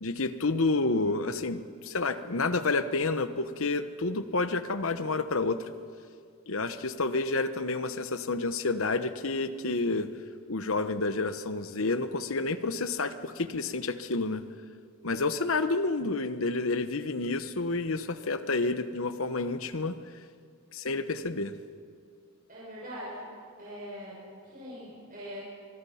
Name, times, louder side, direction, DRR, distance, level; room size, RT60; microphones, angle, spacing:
voice 1, 0.0-5.7 6.5-10.1 10.5-14.4 15.0-20.0 20.7-21.6, left 3 dB, 65° left, 11 dB, 1.0 m, -29 dB
voice 2, 22.5-23.3 23.6-25.4, equal, 40° right, -7 dB, 6.4 m, -42 dB
23.5 x 23.0 x 5.7 m, 2.2 s
head